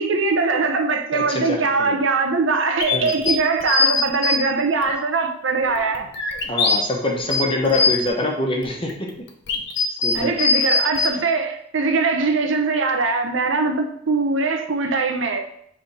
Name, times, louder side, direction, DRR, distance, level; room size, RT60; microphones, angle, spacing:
voice 1, 0.0-6.1 10.1-15.6, right 4 dB, 85° right, 0.7 m, -22 dB
voice 2, 1.1-2.0 2.9-3.2 6.5-9.1 9.9-10.4, left 1 dB, 30° left, 0.9 m, -25 dB
sound 1, 2.8-4.4 4.8-4.9 5.6-6.8 7.2-8.1 8.6-11.1, left 4 dB, 65° left, 0.9 m, -21 dB
6.7 x 3.4 x 4.2 m
head